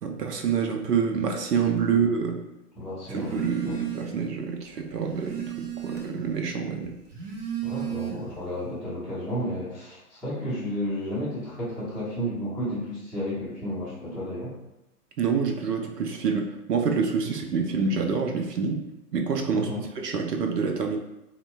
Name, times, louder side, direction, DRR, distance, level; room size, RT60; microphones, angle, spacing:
voice 1, 0.0-2.4 3.1-6.9 15.2-18.8 19.1-19.7 20.0-21.0, right 5 dB, 85° right, 3 dB, 0.6 m, -27 dB
voice 2, 2.8-3.8 7.6-14.5 19.5-19.8, equal, ahead, -14 dB, 0.6 m, -32 dB
Telephone, 3.1-4.3 4.7-6.3 7.0-8.5, right 12 dB, 50° right, 0.7 m, -34 dB
4.0 x 2.1 x 2.2 m, 0.93 s
figure-of-eight pair, 110°, 46 cm